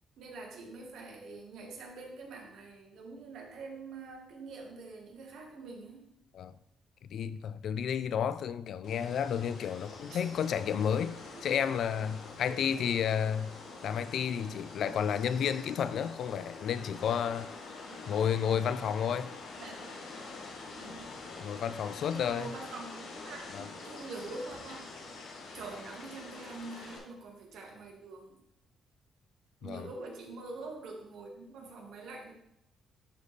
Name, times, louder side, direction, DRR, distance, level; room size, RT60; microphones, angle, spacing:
voice 1, 0.2-6.1 10.1-10.2 11.3-11.4 12.4-13.0 17.9-18.1 18.7-19.1 19.5-20.0 20.7-21.1 22.1-24.8 25.5-28.4 29.6-32.3, right 3 dB, 80° right, 1.6 m, -45 dB
voice 2, 7.1-11.2 11.4-13.5 13.8-17.5 18.1-19.3 21.4-22.5 23.5-23.6 29.6-29.9, left 8 dB, 70° left, 0.4 m, -31 dB
sound 1, 8.8-27.0, left 3 dB, 85° left, 1.5 m, -46 dB
11.0 x 4.1 x 3.2 m
cardioid pair, 90°, 0 cm